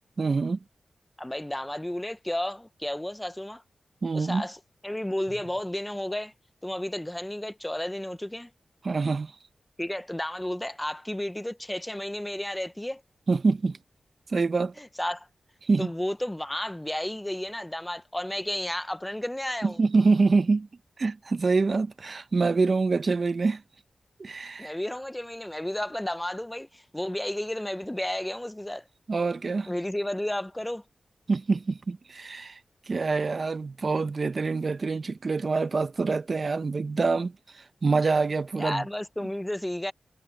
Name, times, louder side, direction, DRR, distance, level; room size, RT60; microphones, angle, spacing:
voice 1, 0.2-0.6 4.0-4.4 8.8-9.3 13.3-13.8 14.3-14.7 15.6-15.9 19.6-20.7 21.0-23.6 24.2-24.7 29.1-29.7 31.3-32.6 32.9-38.8, right 4 dB, 60° right, 0.7 m, -25 dB
voice 2, 1.2-3.6 4.1-6.3 6.6-8.5 9.8-13.0 14.8-15.3 15.8-19.8 24.6-28.8 29.7-30.8 38.6-39.9, left 1 dB, 10° left, 0.7 m, -32 dB
cardioid pair, 50°, 0 cm